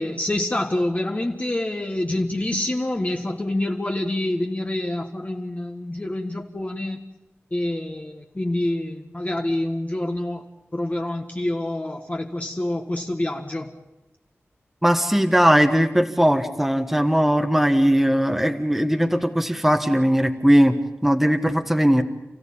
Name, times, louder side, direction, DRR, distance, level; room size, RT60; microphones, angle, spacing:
voice 1, 0.0-7.0 7.5-10.5 10.7-13.7, left 1 dB, 30° left, 2 dB, 1.6 m, -27 dB
voice 2, 14.8-20.7 21.0-22.0, equal, 5° right, 5 dB, 1.5 m, -19 dB
29.5 x 15.5 x 8.8 m, 1.0 s
wide cardioid pair, 85°, 5 cm